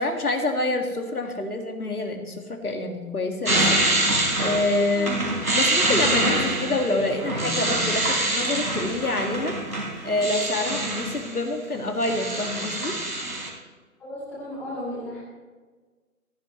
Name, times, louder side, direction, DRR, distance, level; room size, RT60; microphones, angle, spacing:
voice 1, 0.0-3.8 4.4-9.6 10.0-13.0, left 2 dB, 85° left, 4 dB, 2.1 m, -27 dB
sound 1, 3.5-11.4 11.7-13.5, right 2 dB, 80° right, 4.1 m, -25 dB
voice 2, 14.0-15.2, left 1 dB, 5° left, -5 dB, 1.1 m, -34 dB
14.5 x 14.0 x 3.1 m, 1.4 s
figure-of-eight pair, 150°, 44 cm